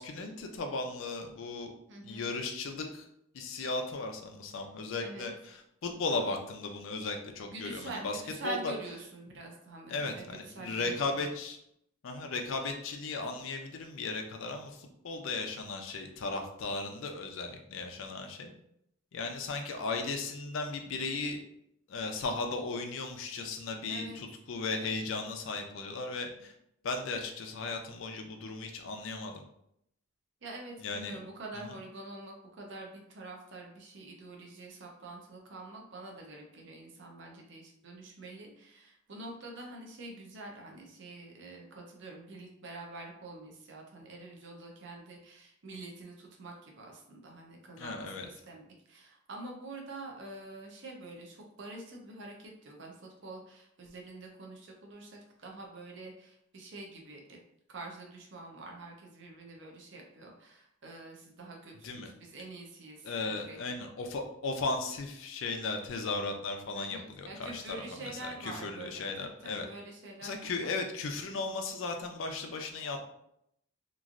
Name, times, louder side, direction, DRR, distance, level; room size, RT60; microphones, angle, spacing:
voice 1, 0.0-1.7 2.0-3.0 3.3-8.7 9.9-11.6 12.0-18.5 19.1-21.4 21.9-26.5 26.8-29.4 30.8-31.2 47.8-48.3 61.8-62.1 63.0-69.7 70.2-73.0, left 3 dB, 65° left, 4 dB, 0.4 m, -36 dB
voice 2, 1.9-2.2 5.0-5.3 7.4-11.3 23.9-24.2 30.4-57.4 57.7-63.1 63.5-63.6 66.7-70.3 70.6-70.7, right 2 dB, 55° right, 0 dB, 0.5 m, -46 dB
3.0 x 2.4 x 2.4 m, 0.75 s
head